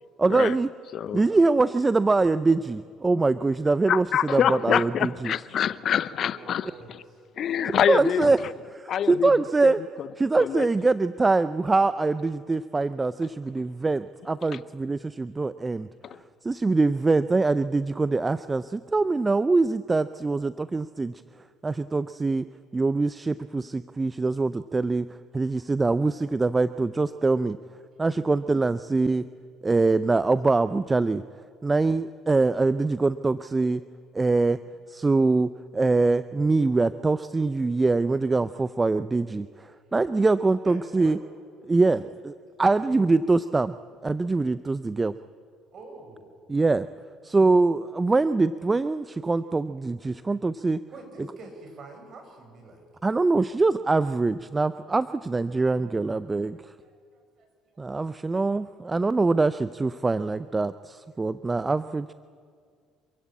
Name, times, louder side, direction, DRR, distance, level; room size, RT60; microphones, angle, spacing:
voice 1, 0.2-0.7 1.1-5.3 7.9-9.8 10.2-15.9 16.4-21.1 21.6-22.5 22.7-25.1 25.3-27.6 28.0-29.3 29.6-31.2 31.6-33.8 34.1-34.6 34.9-41.2 41.6-43.7 44.0-45.2 46.5-46.9 47.2-50.8 53.0-56.7 57.8-62.1, right 3 dB, 20° right, 0.5 m, -24 dB
voice 2, 1.1-1.4 6.1-7.2 25.4-25.5 40.6-41.2 42.7-42.9 45.7-46.3 47.2-47.6 50.1-50.2 50.9-52.8 56.5-58.1 58.9-59.1 61.1-61.2, right 2 dB, 50° right, 5.8 m, -47 dB
voice 3, 3.9-6.7 7.4-8.3 8.9-9.3 9.6-10.1 10.4-10.7, left 9 dB, 55° left, 0.6 m, -25 dB
26.5 x 16.0 x 8.6 m
hypercardioid pair, 60°, 0 cm